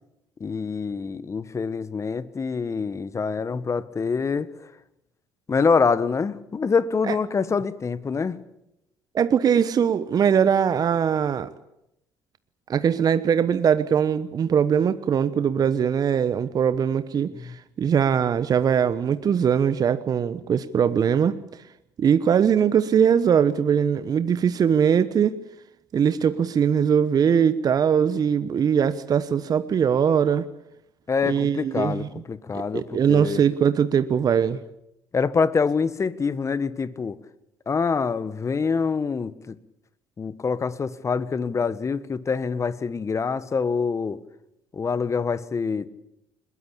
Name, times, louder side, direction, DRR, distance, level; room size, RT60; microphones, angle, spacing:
voice 1, 0.4-4.5 5.5-8.4 17.3-17.5 31.1-33.4 35.1-37.2 37.7-39.5 40.2-44.2 44.7-45.9, left 5 dB, 30° left, 16 dB, 1.5 m, -25 dB
voice 2, 9.1-11.5 12.7-21.4 22.0-25.4 25.9-30.5 31.3-32.1 32.5-34.6, right 7 dB, 45° right, 13 dB, 1.1 m, -21 dB
22.0 x 21.0 x 8.6 m, 0.84 s
hypercardioid pair, 55°, 9 cm